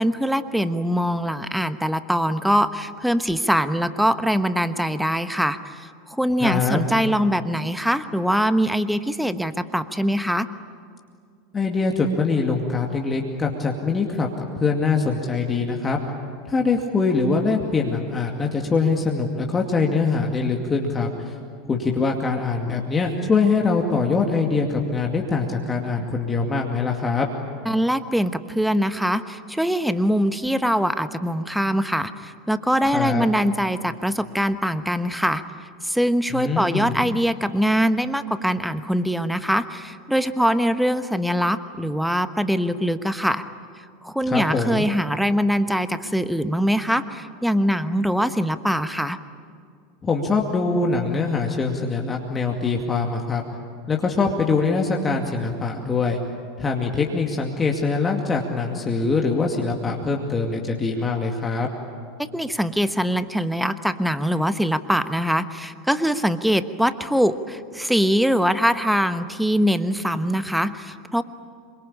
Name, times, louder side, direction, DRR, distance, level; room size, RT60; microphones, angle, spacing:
voice 1, 0.0-10.5 27.6-35.4 35.8-43.4 44.0-49.2 62.3-71.2, equal, ahead, 12 dB, 1.2 m, -23 dB
voice 2, 6.4-6.8 11.5-16.0 16.5-21.3 21.6-27.3 32.9-33.3 36.3-37.0 44.3-44.9 50.0-53.4 53.9-56.2 56.6-61.7, left 4 dB, 20° left, 1 dB, 2.3 m, -23 dB
26.5 x 24.0 x 8.8 m, 2.2 s
figure-of-eight pair, 80°, 0 cm